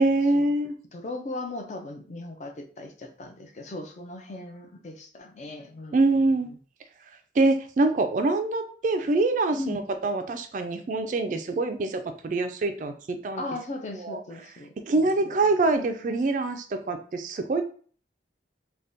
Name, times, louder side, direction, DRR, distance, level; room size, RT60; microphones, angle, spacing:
voice 1, 0.0-0.7 5.9-6.5 7.4-13.4 14.0-14.2 14.9-17.6, right 2 dB, 45° right, 7 dB, 0.3 m, -25 dB
voice 2, 0.9-6.6 9.5-9.8 13.4-15.5, left 2 dB, 40° left, 5 dB, 0.4 m, -38 dB
3.4 x 2.2 x 2.5 m, 0.43 s
head